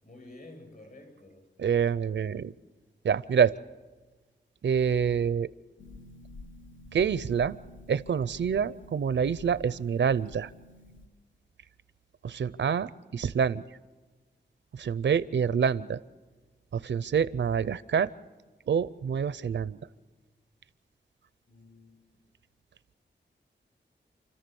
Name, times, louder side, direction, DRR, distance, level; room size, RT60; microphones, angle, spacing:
voice 1, 0.0-1.4 21.5-22.0, left 2 dB, 50° left, 4 dB, 7.7 m, -50 dB
voice 2, 1.6-2.5 3.0-3.5 4.6-5.5 6.9-7.6 7.9-10.5 12.2-13.6 14.8-16.0 16.7-18.1 18.7-19.8, right 7 dB, 75° right, 17 dB, 0.5 m, -26 dB
Harp, 5.8-11.1, left 2 dB, 85° left, 1.5 m, -50 dB
29.0 x 14.0 x 6.9 m, 1.3 s
wide cardioid pair, 105°, 19 cm